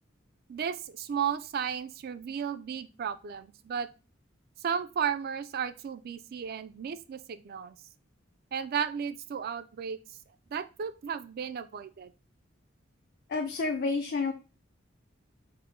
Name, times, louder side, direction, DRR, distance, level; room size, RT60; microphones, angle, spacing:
voice 1, 0.5-3.9 4.6-7.8 8.5-10.0 10.5-12.1, right 7 dB, 50° right, 13 dB, 0.3 m, -34 dB
voice 2, 13.3-14.3, left 4 dB, 55° left, 4 dB, 0.4 m, -29 dB
4.0 x 2.1 x 4.3 m, 0.31 s
head